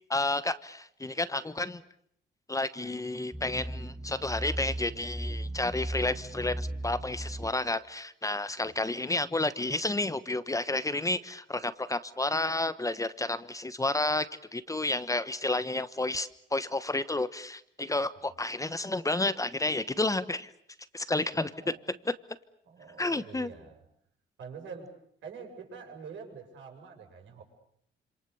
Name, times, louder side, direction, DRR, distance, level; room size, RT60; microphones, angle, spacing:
voice 1, 0.1-1.8 2.5-14.3 14.5-20.5 20.9-21.7 23.0-23.5, left 2 dB, 15° left, 13 dB, 1.1 m, -31 dB
sound 1, 3.3-7.5, right 1 dB, 5° right, 2.1 m, -37 dB
voice 2, 21.6-22.0 22.6-23.8 24.4-24.9 25.2-27.4, right 5 dB, 70° right, 2 dB, 7.5 m, -46 dB
27.0 x 26.5 x 7.0 m, 0.69 s
cardioid pair, 90°, 20 cm